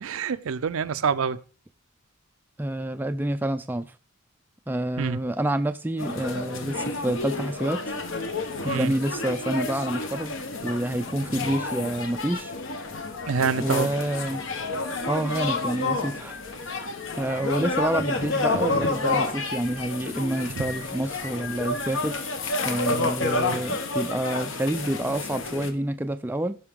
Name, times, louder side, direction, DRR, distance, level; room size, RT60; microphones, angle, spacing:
voice 1, 0.0-1.4 5.0-5.2 8.6-8.9 13.3-13.9 20.5-20.7, right 5 dB, 70° right, 0.5 m, -26 dB
voice 2, 2.6-3.9 4.7-7.9 8.6-10.4 10.6-12.5 13.6-14.4 15.1-16.4 17.2-22.3 22.6-26.6, right 1 dB, 10° right, 0.3 m, -28 dB
sound 1, 6.0-25.7, left 3 dB, 60° left, 1.1 m, -30 dB
16.0 x 5.6 x 3.6 m
head